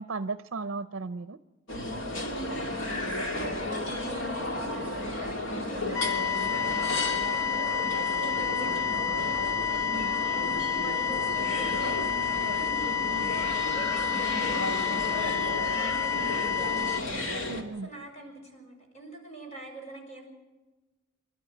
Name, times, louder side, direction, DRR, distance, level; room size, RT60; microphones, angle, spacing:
voice 1, 0.0-1.4 9.9-10.1 13.1-13.3 17.5-17.9, right 3 dB, 65° right, 13 dB, 0.6 m, -35 dB
sound 1, 1.7-17.6, left 1 dB, 65° left, 2.5 m, -33 dB
voice 2, 2.6-7.9 8.2-9.3 9.6-17.5 17.8-20.3, right 1 dB, 35° left, 2 dB, 5.7 m, -45 dB
sound 2, 5.9-17.0, left 7 dB, 90° left, 0.9 m, -29 dB
27.0 x 12.0 x 9.2 m, 1.2 s
head